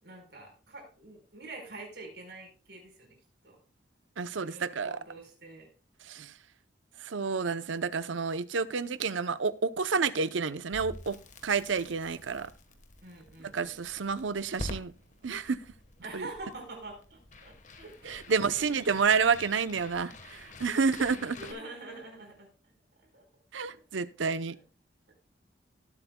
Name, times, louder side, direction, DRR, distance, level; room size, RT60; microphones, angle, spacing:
voice 1, 0.0-3.2 3.4-3.6 4.3-5.7 13.0-13.8 16.0-19.1 21.2-22.5 23.0-23.2 25.1-25.2, right 2 dB, 60° right, 4.6 m, -46 dB
voice 2, 4.2-5.0 6.1-6.3 7.0-11.2 11.4-12.5 13.5-14.9 15.2-15.6 16.1-16.3 18.1-21.4 23.5-24.6, right 5 dB, 90° right, 0.7 m, -29 dB
Crackle, 10.7-21.5, left 2 dB, 40° left, 1.3 m, -47 dB
18.5 x 8.0 x 2.2 m
head